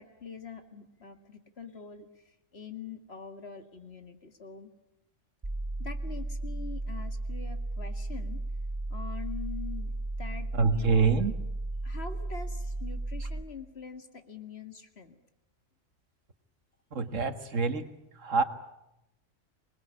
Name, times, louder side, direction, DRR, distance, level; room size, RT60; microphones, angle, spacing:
voice 1, 0.0-2.1 2.5-4.7 5.8-8.4 8.9-11.3 11.8-15.2, left 5 dB, 55° left, 7 dB, 2.4 m, -44 dB
sound 1, 5.4-13.4, right 2 dB, 20° right, 1.1 m, -34 dB
voice 2, 10.5-11.3 16.9-17.9 18.2-18.4, right 4 dB, 80° right, 9 dB, 2.0 m, -26 dB
27.0 x 20.5 x 9.9 m, 0.87 s
omnidirectional pair, 1.3 m